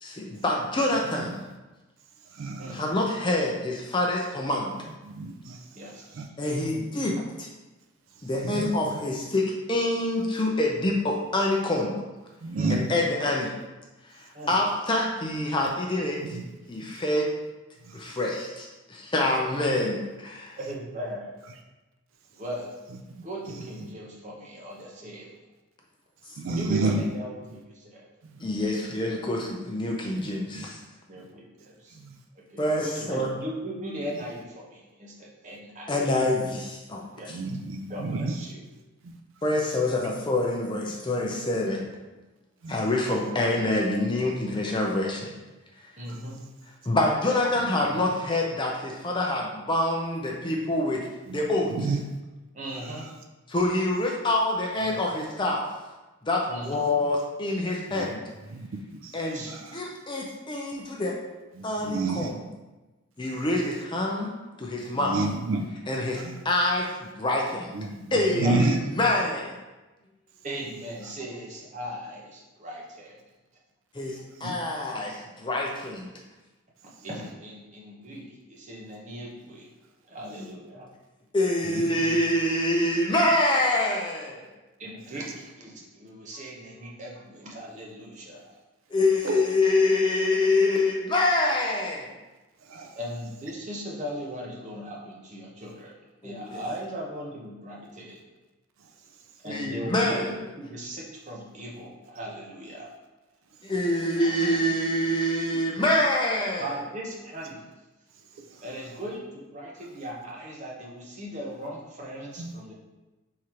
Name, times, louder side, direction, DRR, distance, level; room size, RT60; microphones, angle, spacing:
voice 1, 0.0-1.3 2.7-4.7 6.4-7.2 8.2-12.0 12.7-13.5 14.5-16.2 16.7-17.3 17.9-20.6 28.4-30.8 32.6-33.3 35.9-37.4 39.4-41.8 42.7-45.3 46.9-51.0 51.3-51.7 53.5-55.7 56.2-58.2 59.1-59.5 59.7-61.2 61.6-62.4 63.2-64.3 64.6-65.2 65.9-67.7 68.1-69.5 73.9-74.2 74.4-76.1 80.2-80.5 81.3-84.5 88.9-92.1 96.2-96.6 99.4-100.3 103.6-106.7, left 1 dB, 20° left, -1 dB, 0.5 m, -26 dB
voice 2, 1.1-1.4 2.2-2.8 5.0-5.8 6.1-6.3 8.1-9.0 12.4-13.0 16.2-16.4 16.7-17.0 17.8-18.2 23.1-23.9 26.3-27.1 27.5-27.6 28.2-28.4 30.2-30.7 31.9-32.2 37.3-38.5 39.0-39.2 40.9-41.3 42.6-42.9 46.1-46.2 47.5-48.1 51.3-51.4 51.7-52.2 52.7-53.1 54.9-55.0 57.9-58.1 58.4-59.8 61.5-62.3 63.2-63.5 64.8-65.7 66.1-66.4 67.7-68.8 71.0-71.1 74.1-74.6 74.8-74.9 77.0-77.1 81.6-82.2 89.2-89.4 92.6-93.0 98.8-99.2 103.6-103.7 108.2-108.9 112.4-112.5, right 3 dB, 65° right, 3 dB, 0.4 m, -32 dB
voice 3, 20.6-21.4 22.3-22.7 23.2-25.4 26.4-28.1 31.1-32.0 32.3-36.0 37.1-37.3 37.9-38.6 41.2-41.4 46.0-46.4 52.5-53.1 56.5-56.8 59.2-59.6 68.4-68.6 70.4-73.2 77.0-79.7 80.1-80.9 84.8-88.6 93.0-95.9 96.2-98.2 99.4-102.9 106.6-107.6 108.6-112.7, equal, 35° right, -3 dB, 0.8 m, -38 dB
3.8 x 3.1 x 4.3 m, 1.1 s
head